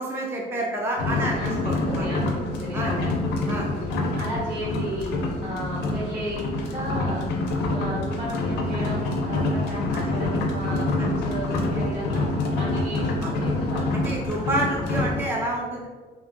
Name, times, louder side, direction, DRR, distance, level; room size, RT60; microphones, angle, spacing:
voice 1, 0.0-2.1 2.7-3.0 3.5-3.7 9.9-10.0 11.0-11.1 13.2-13.3 14.0-15.9, right 1 dB, 15° right, -2 dB, 0.3 m, -28 dB
sound 1, 1.0-15.2, left 2 dB, 85° left, 0.5 m, -26 dB
voice 2, 1.0-3.1 3.6-5.1 5.4-13.9, right 1 dB, 75° right, -6 dB, 1.3 m, -34 dB
2.7 x 2.2 x 2.5 m, 1.4 s
cardioid pair, 110°, 17 cm